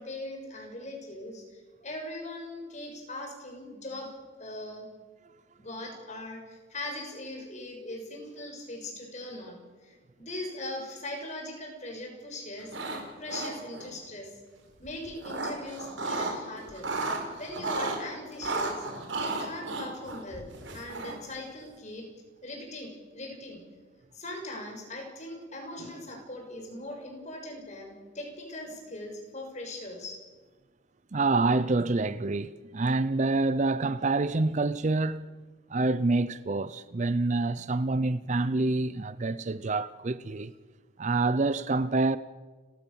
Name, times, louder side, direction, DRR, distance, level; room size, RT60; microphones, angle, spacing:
voice 1, 0.0-4.1 4.4-4.9 5.6-12.9 13.2-14.3 14.8-16.9 17.4-18.8 19.2-20.5 20.7-22.1 22.4-23.6 24.1-30.2, left 1 dB, 40° left, 6.3 m, -40 dB
sound 1, 12.6-13.0 13.3-13.9 14.8-16.4 16.7-18.0 18.4-21.3, right 3 dB, 70° right, 4.6 m, -33 dB
voice 2, 31.1-35.2 35.7-40.5 41.0-42.2, right 3 dB, 40° right, 0.5 m, -27 dB
30.0 x 14.5 x 7.1 m
head